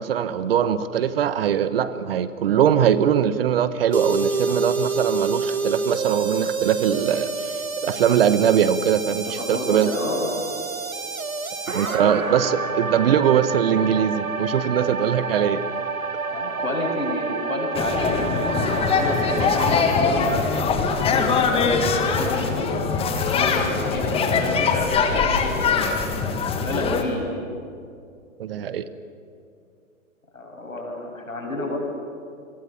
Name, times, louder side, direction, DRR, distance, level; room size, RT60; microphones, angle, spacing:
voice 1, 0.0-9.9 11.7-15.6 28.4-28.8, right 9 dB, 45° right, 14 dB, 1.2 m, -21 dB
sound 1, 3.9-19.9, right 4 dB, 90° right, 1.2 m, -28 dB
voice 2, 9.4-10.3 11.9-12.1 16.3-20.6 21.1-22.7 23.3-27.4 30.3-31.8, left 2 dB, 80° left, 1 dB, 7.3 m, -30 dB
sound 2, 17.7-27.0, left 5 dB, 15° left, 1.7 m, -22 dB
28.5 x 22.5 x 7.1 m, 2.4 s
figure-of-eight pair, 120°, 40 cm